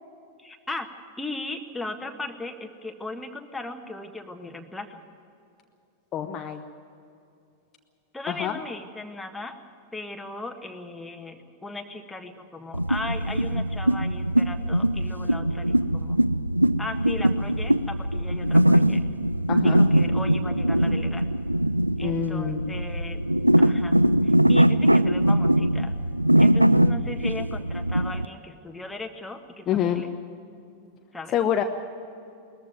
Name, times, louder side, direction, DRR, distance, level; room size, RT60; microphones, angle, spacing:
voice 1, 0.4-0.9 1.2-5.0 8.1-9.6 9.9-16.2 16.8-19.0 19.6-21.3 22.0-23.2 23.6-24.0 24.2-25.9 26.4-30.1 31.1-31.4, left 2 dB, 5° left, 4 dB, 1.7 m, -37 dB
voice 2, 6.1-6.6 8.3-8.5 19.5-19.8 22.0-22.7 29.7-30.0 31.3-31.6, left 9 dB, 30° left, 5 dB, 1.0 m, -26 dB
sound 1, 12.7-28.3, right 1 dB, 90° right, 0.4 m, -22 dB
20.5 x 14.5 x 9.3 m, 2.7 s
figure-of-eight pair, 90°, 0 cm